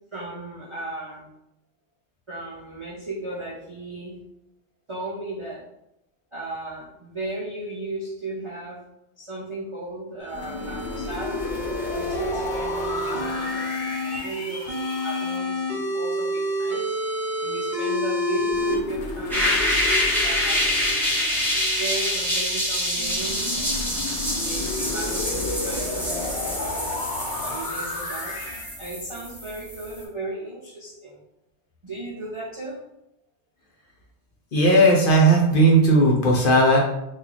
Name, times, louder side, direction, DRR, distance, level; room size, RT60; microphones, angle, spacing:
voice 1, 0.1-1.3 2.3-4.2 4.9-5.7 6.3-8.8 9.2-11.4 11.9-16.9 17.4-19.6 20.2-20.7 21.6-23.8 24.5-27.0 27.4-28.4 28.8-31.2 31.8-32.8, right 2 dB, 40° right, -6 dB, 0.4 m, -35 dB
sound 1, 10.2-14.2 14.7-18.7, left 1 dB, 65° right, 1.1 m, -28 dB
sound 2, 10.3-15.4 18.5-22.3 23.0-28.7, left 2 dB, 80° left, 1.0 m, -32 dB
sound 3, 19.3-30.0, left 1 dB, ahead, 0.6 m, -26 dB
voice 2, 34.5-36.8, right 1 dB, 55° left, -1 dB, 0.8 m, -16 dB
3.0 x 2.4 x 3.8 m, 0.81 s
omnidirectional pair, 1.2 m